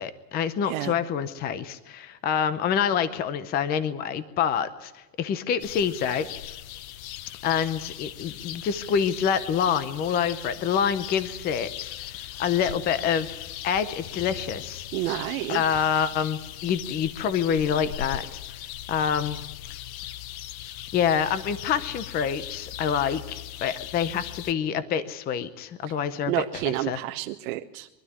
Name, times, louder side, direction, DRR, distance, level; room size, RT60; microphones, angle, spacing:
voice 1, 0.0-6.3 7.4-14.9 15.5-18.4 18.9-19.4 20.9-27.0, left 8 dB, 20° left, 14 dB, 0.7 m, -27 dB
voice 2, 0.6-1.0 14.9-15.9 25.8-26.0 26.3-27.9, right 16 dB, 60° right, 3 dB, 1.1 m, -30 dB
sound 1, 5.6-24.5, left 12 dB, 60° left, 0.9 m, -39 dB
sound 2, 11.6-16.0, left 7 dB, 75° left, 5.8 m, -50 dB
24.5 x 12.5 x 9.6 m, 1.1 s
supercardioid pair, 155°, 48 cm